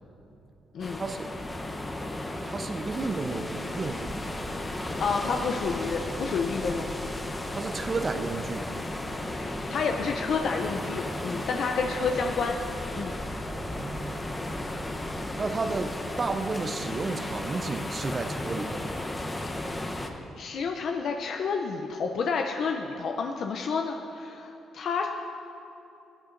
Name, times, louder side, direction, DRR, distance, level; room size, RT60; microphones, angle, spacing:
sound 1, 0.8-20.1, left 1 dB, 15° left, 0.8 m, -35 dB
voice 1, 1.0-1.3 2.5-4.2 7.5-8.7 13.5-14.2 15.3-18.9, right 3 dB, 35° right, 8 dB, 0.5 m, -32 dB
Subway metro underground, 2.6-17.7, equal, 10° right, 1.8 m, -44 dB
voice 2, 5.0-7.1 9.3-12.6 13.0-13.2 20.4-25.1, left 5 dB, 65° left, 3 dB, 0.5 m, -30 dB
16.0 x 8.6 x 2.6 m, 2.8 s
cardioid pair, 90°, 0 cm